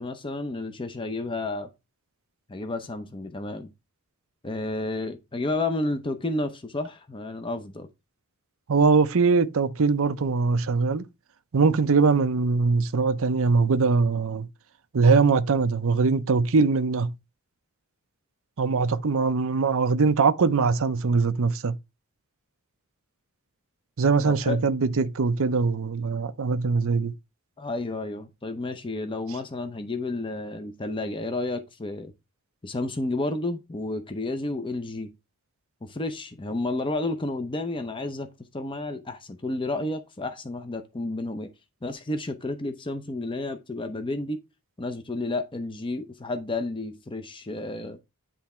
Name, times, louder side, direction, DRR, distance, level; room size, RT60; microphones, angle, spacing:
voice 1, 0.0-1.7 2.5-3.7 4.4-7.9 24.3-24.7 27.6-32.1 32.6-35.1 35.8-41.5 41.8-44.4 44.8-48.0, left 2 dB, 25° left, 0.7 m, -31 dB
voice 2, 8.7-11.0 11.5-14.5 14.9-17.1 18.6-21.8 24.0-27.1, right 4 dB, 65° right, 0.6 m, -22 dB
10.5 x 3.5 x 4.3 m
head